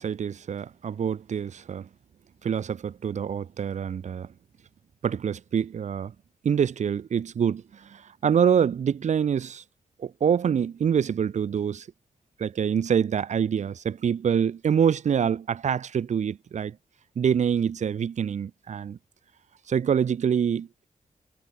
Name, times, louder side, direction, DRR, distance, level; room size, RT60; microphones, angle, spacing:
voice 1, 0.0-1.9 2.4-4.3 5.0-6.1 6.4-9.6 10.0-11.9 12.4-16.7 17.1-19.0 19.7-20.9, right 7 dB, 70° right, 1.7 m, -26 dB
wide cardioid pair, 130°, 13 cm